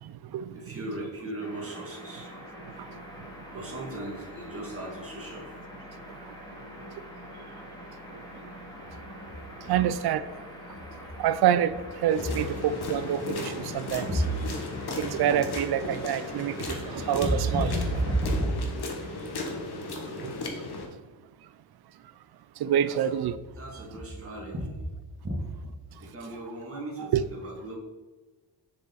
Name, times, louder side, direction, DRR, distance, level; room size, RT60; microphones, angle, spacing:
voice 1, 0.5-2.3 3.5-5.6 9.3-9.4 12.2-12.3 14.1-14.7 17.0-18.6 22.9-23.0 23.6-24.9 25.2-25.7 26.0-27.8, right 1 dB, 30° right, 2.1 m, -32 dB
sound 1, 1.4-18.4, equal, 10° left, 2.1 m, -44 dB
voice 2, 9.7-10.2 11.2-14.1 15.0-17.7 20.2-20.3 22.6-23.4 27.0-27.3, right 10 dB, 55° right, 0.5 m, -26 dB
sound 2, 12.1-20.9, left 2 dB, 55° left, 1.3 m, -36 dB
6.8 x 5.0 x 4.0 m
cardioid pair, 100°, 46 cm